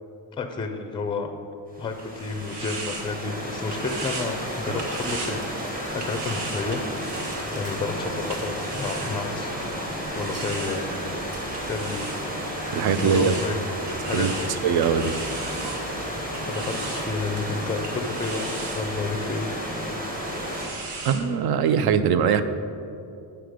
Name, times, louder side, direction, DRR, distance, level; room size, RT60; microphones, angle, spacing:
voice 1, 0.3-1.3 1.8-5.4 5.9-6.8 7.5-9.5 9.8-10.9 11.7-12.2 13.0-13.7 14.1-14.5 16.5-18.5 18.7-19.5, left 4 dB, 15° left, 5 dB, 0.4 m, -31 dB
Stream / Liquid, 1.7-20.7, equal, 20° right, 1.2 m, -32 dB
sound 1, 1.7-9.6 10.2-21.2, right 3 dB, 80° right, 1.2 m, -38 dB
sound 2, 3.8-17.5, right 1 dB, 40° right, 1.1 m, -43 dB
voice 2, 12.7-13.4 14.1-14.3 14.6-15.1 21.0-22.4, right 7 dB, 65° right, 12 dB, 0.5 m, -21 dB
7.8 x 5.8 x 5.0 m, 2.7 s
wide cardioid pair, 160°, 41 cm